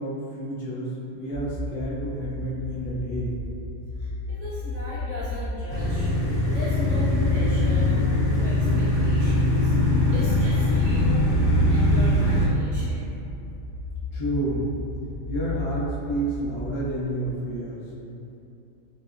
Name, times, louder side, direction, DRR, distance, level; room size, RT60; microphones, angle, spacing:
voice 1, 0.0-3.3 14.1-14.7 15.3-17.8, right 1 dB, 30° left, -9 dB, 0.6 m, -30 dB
sound 1, 1.3-17.3, left 2 dB, 80° left, 1.0 m, -33 dB
voice 2, 4.0-6.1 6.5-9.7 10.1-11.3 11.7-13.1, equal, 65° right, -13 dB, 1.8 m, -38 dB
sound 2, 5.7-12.5, left 1 dB, 65° left, 1.4 m, -22 dB
5.1 x 2.0 x 2.5 m, 2.8 s
omnidirectional pair, 1.4 m